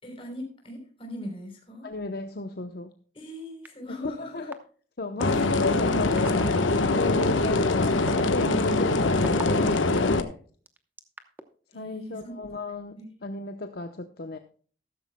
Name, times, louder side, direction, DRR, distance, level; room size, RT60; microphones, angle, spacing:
voice 1, 0.0-1.9 3.1-4.5 5.3-5.5 11.7-12.4 13.0-13.1, equal, 30° left, 3 dB, 3.7 m, -40 dB
voice 2, 1.8-2.9 3.9-4.6 5.0-10.4 11.7-14.4, left 3 dB, 55° left, 7 dB, 0.8 m, -34 dB
sound 1, 3.6-3.7 4.5-4.6 5.2-5.5 6.2-6.4 7.2-7.3 7.9-10.0 10.7-11.4, right 1 dB, 10° right, 0.8 m, -37 dB
sound 2, 5.2-10.2, left 2 dB, 90° left, 1.1 m, -23 dB
14.0 x 13.5 x 2.2 m, 0.43 s
head